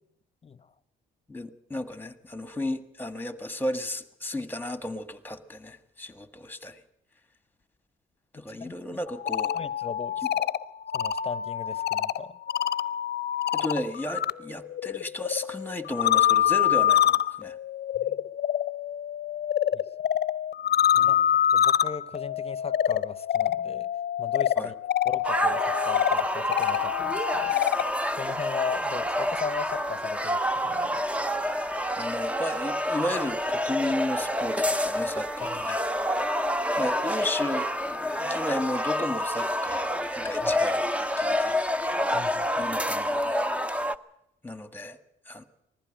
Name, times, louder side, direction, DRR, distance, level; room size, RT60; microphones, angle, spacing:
voice 1, 1.3-6.8 8.3-9.5 13.5-17.5 21.0-21.3 24.6-24.7 32.0-35.8 36.8-41.7 42.6-43.4 44.4-45.0 45.3-45.4, left 1 dB, 10° left, 1.6 m, -34 dB
voice 2, 8.3-8.7 9.5-10.5 10.9-12.4 18.0-18.2 19.7-19.8 20.9-21.2 21.5-23.9 24.2-24.7 25.0-27.9 28.2-30.4 30.6-31.1 35.4-35.6 40.4-40.6 42.1-42.7, left 5 dB, 30° left, 0.9 m, -37 dB
sound 1, 9.1-14.3 14.6-27.9, left 11 dB, 55° left, 0.7 m, -26 dB
sound 2, 25.2-44.0, equal, 5° right, 0.8 m, -28 dB
20.5 x 15.0 x 8.9 m
cardioid pair, 90°, 20 cm